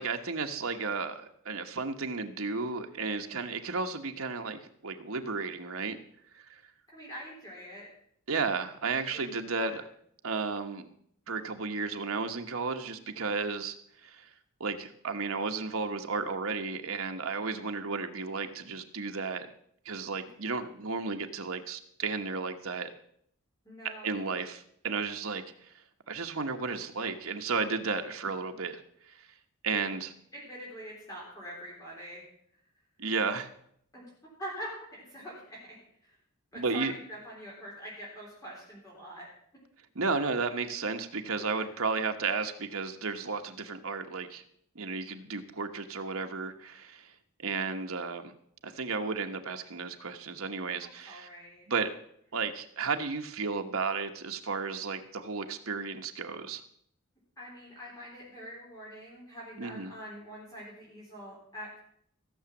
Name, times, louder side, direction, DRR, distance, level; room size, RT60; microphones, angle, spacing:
voice 1, 0.0-6.0 6.3-6.6 8.3-9.8 10.2-10.9 11.3-13.8 14.0-14.3 14.6-19.5 19.8-22.9 24.0-25.4 26.1-28.8 29.1-29.2 29.6-30.1 33.0-33.5 36.6-36.9 39.9-44.4 44.7-47.1 47.4-48.3 48.6-51.3 51.7-51.9 52.3-56.6 59.6-59.9, right 4 dB, 70° right, 5 dB, 1.2 m, -33 dB
voice 2, 6.9-7.9 9.1-9.2 9.6-9.8 13.1-13.4 20.2-20.3 23.7-24.2 30.3-32.2 33.9-34.1 34.4-34.7 35.0-35.8 36.0-36.2 36.5-39.3 50.8-51.7 57.4-61.8, equal, 15° left, -5 dB, 3.8 m, -44 dB
15.5 x 7.0 x 7.3 m, 0.68 s
head